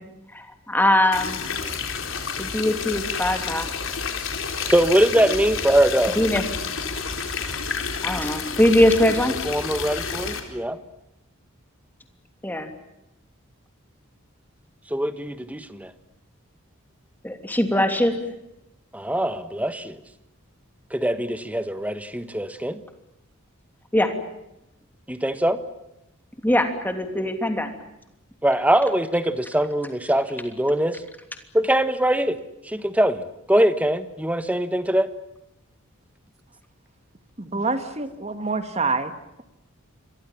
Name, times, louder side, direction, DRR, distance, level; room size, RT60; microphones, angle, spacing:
voice 1, 0.3-1.4 2.4-3.8 6.1-6.4 8.0-9.3 12.4-12.7 17.2-18.1 23.9-24.1 26.4-27.7 37.5-37.6, left 1 dB, 10° left, 6 dB, 3.0 m, -21 dB
sound 1, 1.1-10.4, left 5 dB, 65° left, 4.2 m, -30 dB
voice 2, 4.6-6.2 9.4-10.8 14.9-15.9 18.9-20.0 20.9-22.8 25.1-25.6 28.4-31.0 31.5-32.4 32.7-35.1, right 1 dB, 5° right, 11 dB, 1.4 m, -22 dB
voice 3, 37.4-39.1, right 3 dB, 30° right, 9 dB, 1.9 m, -26 dB
28.5 x 23.5 x 7.4 m, 0.90 s
head